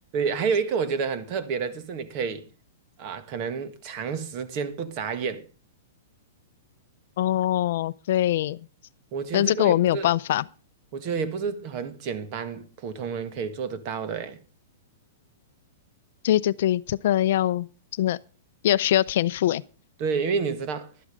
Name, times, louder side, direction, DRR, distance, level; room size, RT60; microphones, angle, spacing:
voice 1, 0.1-2.4 3.0-5.5 9.1-10.1 10.9-14.4 20.0-20.9, right 5 dB, 35° right, 1.6 m, -29 dB
voice 2, 7.2-8.6 9.3-10.4 16.2-17.7 18.0-18.2 18.6-19.6, left 12 dB, 55° left, 0.5 m, -22 dB
12.0 x 11.0 x 5.0 m
hypercardioid pair, 160°, 0 cm